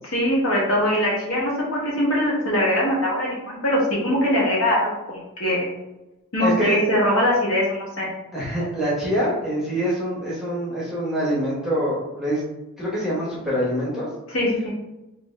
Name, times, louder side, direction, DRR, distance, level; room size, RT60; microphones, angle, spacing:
voice 1, 0.0-5.7 6.3-8.1 14.3-14.7, left 1 dB, 70° left, -5 dB, 1.3 m, -22 dB
voice 2, 6.4-6.8 8.3-12.4 12.8-14.1, equal, ahead, -7 dB, 0.9 m, -25 dB
3.4 x 2.5 x 3.2 m, 0.99 s
head